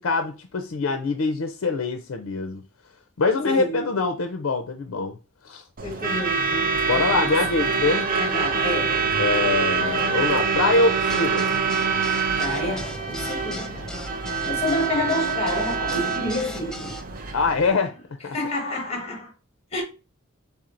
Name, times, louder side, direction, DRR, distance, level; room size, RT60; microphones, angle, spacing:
voice 1, 0.0-2.6 3.2-5.2 5.4-5.6 6.8-8.1 9.2-11.5 17.3-18.0 18.2-18.4, left 3 dB, 65° left, 0.5 m, -24 dB
voice 2, 3.4-3.9 5.8-7.4 8.1-9.1 12.4-14.0 14.4-17.0 18.3-19.3 19.7-19.8, left 1 dB, 30° left, 1.3 m, -29 dB
Truck / Alarm, 5.8-17.7, right 5 dB, 40° right, 0.6 m, -25 dB
sound 1, 11.1-17.0, left 1 dB, 5° left, 0.4 m, -39 dB
4.3 x 3.6 x 2.5 m
head